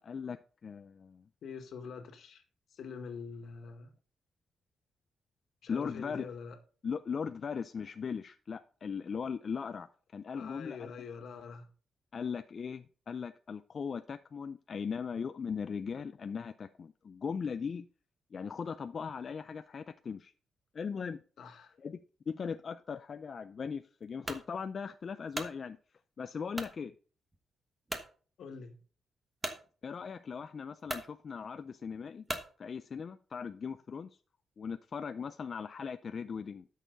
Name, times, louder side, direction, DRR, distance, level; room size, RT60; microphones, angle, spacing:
voice 1, 0.0-1.2 5.7-6.3 6.8-9.9 10.1-10.9 12.1-17.9 18.3-20.3 20.7-21.2 21.8-22.0 22.3-25.8 26.2-26.9 29.8-32.2 32.6-34.1 34.6-36.7, left 6 dB, 40° left, 0.4 m, -39 dB
voice 2, 1.4-2.4 2.7-3.9 5.6-6.6 10.3-11.7 21.4-21.8 28.4-28.8, left 5 dB, 65° left, 1.8 m, -45 dB
sound 1, 24.3-24.5 25.1-25.6 26.5-26.8 27.3-27.4 27.9-28.1 29.4-29.6 30.4-30.5 30.8-31.1 32.3-32.5, right 1 dB, 15° right, 1.2 m, -38 dB
12.5 x 6.6 x 3.9 m
wide cardioid pair, 155°, 0 cm